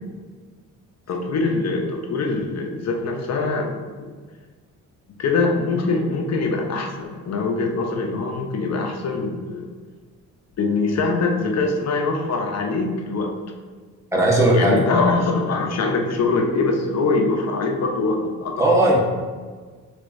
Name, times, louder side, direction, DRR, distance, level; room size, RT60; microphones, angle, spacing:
voice 1, 1.1-4.1 5.2-9.7 10.6-13.4 14.5-18.6, left 3 dB, 50° left, 2 dB, 0.8 m, -23 dB
voice 2, 14.1-14.7 18.6-19.0, right 1 dB, 10° right, -3 dB, 1.1 m, -16 dB
6.6 x 3.0 x 2.6 m, 1.5 s
cardioid pair, 85°, 33 cm